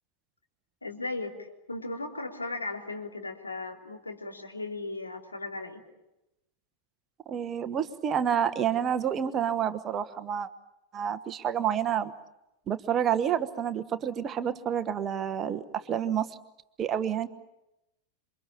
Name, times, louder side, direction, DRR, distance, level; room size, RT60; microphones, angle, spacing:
voice 1, 0.8-1.4 1.7-5.8, left 2 dB, 80° left, 1 dB, 3.4 m, -36 dB
voice 2, 7.3-10.5 10.9-12.1 12.7-16.3 16.8-17.3, right 9 dB, 30° right, 10 dB, 1.2 m, -29 dB
28.0 x 25.0 x 7.2 m, 0.92 s
figure-of-eight pair, 90°, 0 cm